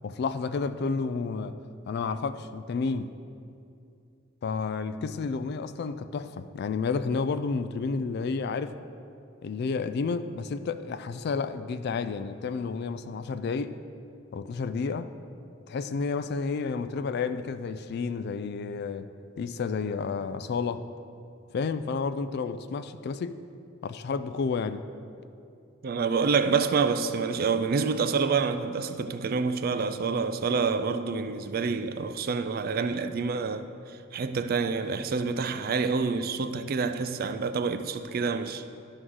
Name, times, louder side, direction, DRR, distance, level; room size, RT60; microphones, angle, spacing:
voice 1, 0.0-1.6 1.9-3.1 4.4-8.8 9.4-13.8 14.3-15.1 15.7-19.1 19.4-20.8 21.5-23.4 23.8-24.8, left 4 dB, 55° left, 0.3 m, -31 dB
voice 2, 25.8-38.6, right 5 dB, 50° right, 0.4 m, -27 dB
11.0 x 3.8 x 6.2 m
head